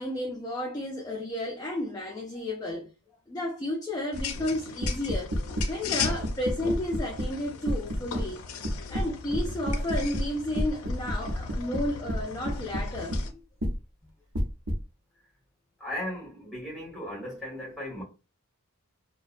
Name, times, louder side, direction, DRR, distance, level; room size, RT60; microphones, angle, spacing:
voice 1, 0.0-2.9 3.3-5.4 5.7-8.4 8.9-13.3, left 1 dB, 15° left, 0.4 m, -32 dB
sound 1, 4.1-13.3, left 6 dB, 90° left, 0.5 m, -38 dB
sound 2, 4.2-4.4 4.8-5.7 6.0-7.4 7.7-8.3 8.6-10.3 10.6-13.3 13.6-13.8 14.3-14.8, equal, 70° right, 0.7 m, -29 dB
voice 2, 15.8-18.0, left 1 dB, ahead, 1.5 m, -36 dB
2.7 x 2.1 x 2.4 m
head